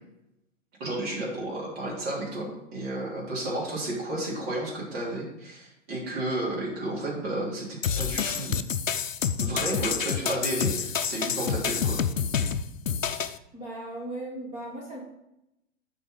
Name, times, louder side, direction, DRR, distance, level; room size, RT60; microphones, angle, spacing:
voice 1, 0.8-8.6 9.4-12.0, right 1 dB, 50° right, -5 dB, 3.2 m, -32 dB
sound 1, 7.8-13.4, left 7 dB, 85° left, 0.6 m, -28 dB
voice 2, 13.5-15.0, right 1 dB, 20° right, -3 dB, 1.3 m, -37 dB
7.7 x 4.6 x 5.2 m, 0.86 s
figure-of-eight pair, 110°, 38 cm